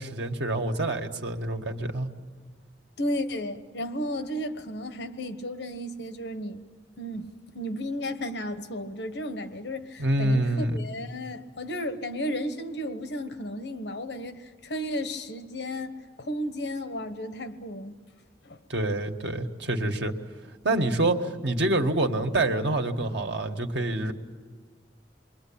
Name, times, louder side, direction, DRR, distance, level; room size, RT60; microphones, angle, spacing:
voice 1, 0.0-2.1 10.0-10.8 18.7-20.1 20.6-24.1, right 2 dB, 80° right, 4 dB, 1.8 m, -26 dB
voice 2, 3.0-6.6 7.0-17.9 18.4-18.6, equal, 70° left, 9 dB, 1.3 m, -33 dB
28.5 x 22.5 x 8.8 m, 1.5 s
head